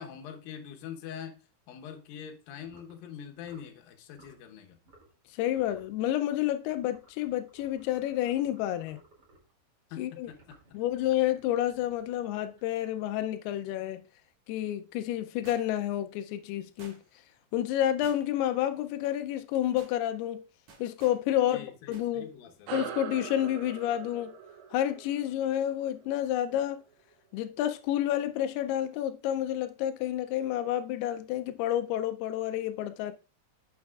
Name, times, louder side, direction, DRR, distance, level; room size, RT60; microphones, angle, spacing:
voice 1, 0.0-1.4 1.7-4.8 9.9-10.6 21.5-22.7, left 8 dB, 75° left, 2.7 m, -44 dB
sound 1, 2.6-3.0 3.4-3.7 4.1-4.4 4.8-5.2 5.5-5.9 6.6-9.5 10.2-13.0, right 2 dB, 30° right, 2.4 m, -60 dB
voice 2, 5.3-9.0 10.0-10.3 10.7-14.1 14.5-17.0 17.5-20.4 20.8-22.3 22.7-24.4 24.7-26.8 27.3-33.1, left 12 dB, 90° left, 2.5 m, -30 dB
sound 2, 15.5-16.0 16.8-17.3 18.0-18.5 18.9-19.1 19.5-20.0 20.7-21.2 21.9-22.1 22.4-22.5, right 4 dB, 55° right, 2.3 m, -53 dB
sound 3, 22.7-27.5, right 8 dB, 80° right, 3.2 m, -43 dB
9.4 x 6.9 x 2.3 m
omnidirectional pair, 4.5 m